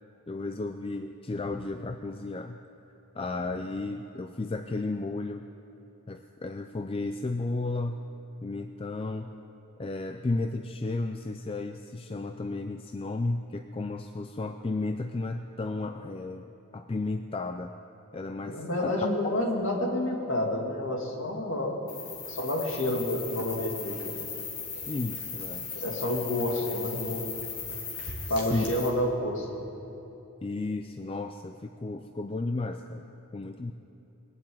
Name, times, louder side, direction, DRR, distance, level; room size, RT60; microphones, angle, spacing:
voice 1, 0.3-2.6 3.1-5.5 6.1-8.0 8.4-9.3 9.8-17.7 18.1-19.1 24.9-25.7 28.3-28.7 30.4-33.7, left 2 dB, 25° left, 7 dB, 0.4 m, -33 dB
voice 2, 18.5-21.8 22.3-24.0 25.8-27.4 28.3-29.5, left 1 dB, 60° left, 0 dB, 2.4 m, -29 dB
sound 1, 21.9-28.9, left 5 dB, 85° left, 2.7 m, -38 dB
21.5 x 7.4 x 8.7 m, 3.0 s
head